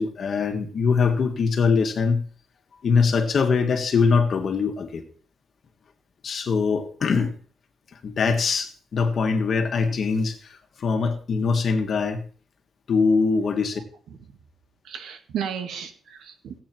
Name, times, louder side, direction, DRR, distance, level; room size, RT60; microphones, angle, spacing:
voice 1, 0.0-2.2 2.8-5.0 6.2-7.3 8.0-12.2 12.9-13.8, left 5 dB, 45° left, 5 dB, 1.8 m, -22 dB
voice 2, 13.6-14.2 14.8-16.6, right 8 dB, 80° right, 6 dB, 2.1 m, -34 dB
17.0 x 8.5 x 4.6 m, 0.43 s
cardioid pair, 140°, 0 cm